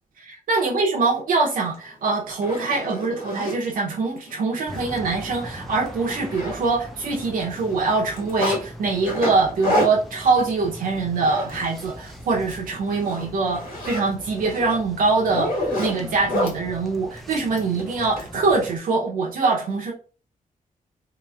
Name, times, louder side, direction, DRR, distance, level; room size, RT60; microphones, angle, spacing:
voice 1, 0.2-19.9, right 3 dB, 75° right, -2 dB, 0.7 m, -23 dB
Zipper (clothing), 1.7-1.8 2.3-3.6 4.2-4.3 4.7-4.8 5.2-5.3 5.6-6.9 7.2-8.6 9.0-12.0 12.3-12.6 12.9-16.6 17.6-18.3, left 1 dB, 85° left, 1.4 m, -29 dB
sound 1, 4.7-18.8, equal, ahead, 0.4 m, -41 dB
4.0 x 2.9 x 2.3 m, 0.39 s
wide cardioid pair, 175°, 14 cm